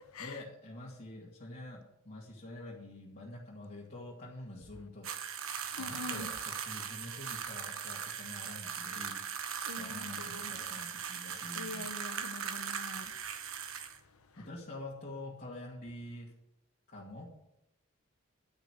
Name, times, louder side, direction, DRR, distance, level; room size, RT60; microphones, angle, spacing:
voice 1, 0.2-5.1 5.7-11.9 14.4-16.3 16.9-17.3, left 1 dB, 45° left, 2.4 m, -47 dB
sound 1, 5.0-14.0, right 7 dB, 70° right, 1.3 m, -39 dB
voice 2, 5.8-6.3 9.7-10.6 11.6-13.0, left 3 dB, 90° left, 1.1 m, -44 dB
13.0 x 6.0 x 8.2 m
head